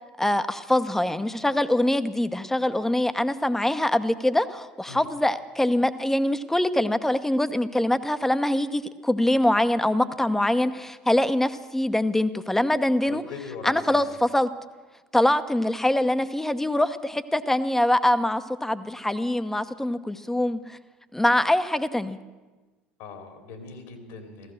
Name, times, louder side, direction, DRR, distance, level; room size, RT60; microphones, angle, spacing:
voice 1, 0.2-13.2 13.6-14.5 15.1-20.8 21.1-22.2, left 1 dB, 5° left, 11 dB, 0.9 m, -24 dB
voice 2, 13.0-14.0 23.0-24.5, left 5 dB, 65° left, 5 dB, 2.9 m, -40 dB
15.0 x 14.5 x 6.5 m, 1.3 s
hypercardioid pair, 70°, 5 cm